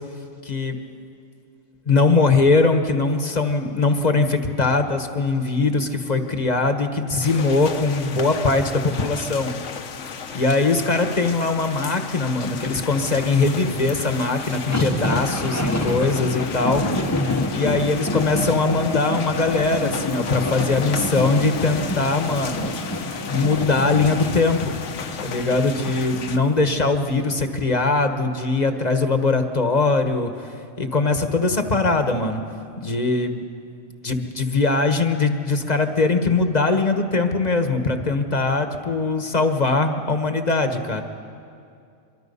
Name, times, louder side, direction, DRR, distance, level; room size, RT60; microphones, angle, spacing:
voice 1, 0.4-0.8 1.9-9.5 10.3-16.8 17.5-22.8 23.3-24.7 25.2-32.4 32.8-33.4 34.0-41.0, left 3 dB, 35° left, 6 dB, 1.2 m, -21 dB
sound 1, 7.2-26.4, left 6 dB, 65° left, 1.2 m, -35 dB
sound 2, 12.4-26.9 27.3-27.4, left 1 dB, 15° left, 0.8 m, -28 dB
25.0 x 23.5 x 5.5 m, 2.4 s
omnidirectional pair, 1.4 m